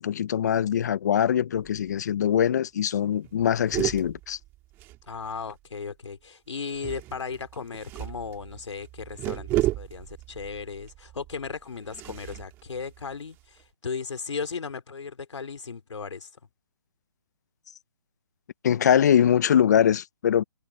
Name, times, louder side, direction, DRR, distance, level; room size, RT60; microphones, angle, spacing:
voice 1, 0.0-4.4 18.6-20.4, left 9 dB, 35° left, 0.5 m, -22 dB
sound 1, 1.5-2.0 2.3-2.4 2.7-2.9 3.2-5.6 6.7-13.6, right 16 dB, 15° right, 1.8 m, -34 dB
voice 2, 5.1-16.3, left 5 dB, 80° left, 3.6 m, -36 dB
hypercardioid pair, 165°, 15 cm